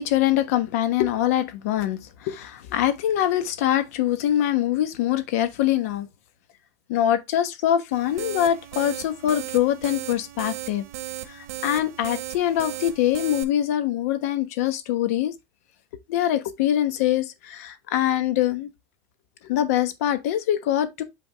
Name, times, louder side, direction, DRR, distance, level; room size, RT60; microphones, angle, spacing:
voice 1, 0.0-6.1 6.9-10.8 11.3-15.3 16.1-18.7 19.4-21.0, left 11 dB, 70° left, 1.1 m, -24 dB
sound 1, 7.9-13.4, right 13 dB, 85° right, 1.2 m, -36 dB
8.6 x 3.5 x 3.4 m
supercardioid pair, 170°, 8 cm